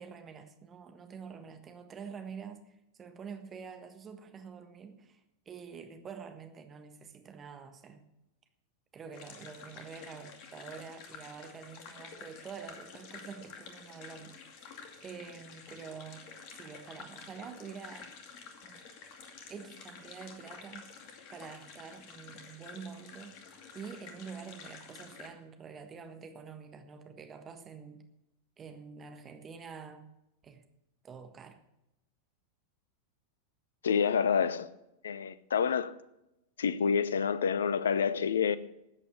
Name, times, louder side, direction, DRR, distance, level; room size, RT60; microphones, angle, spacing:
voice 1, 0.0-5.2 5.4-8.0 8.9-14.7 15.0-16.3 16.5-18.1 18.6-18.8 19.5-20.9 21.3-23.4 23.7-28.1 28.6-30.1 30.4-30.6 31.0-31.6, right 6 dB, 25° right, 1.4 m, -47 dB
sound 1, 9.1-25.3, left 5 dB, 45° left, 2.3 m, -50 dB
voice 2, 33.8-34.7 35.0-35.9 36.6-38.6, left 6 dB, 65° left, 0.7 m, -28 dB
13.5 x 8.6 x 8.7 m
figure-of-eight pair, 90°, 0 cm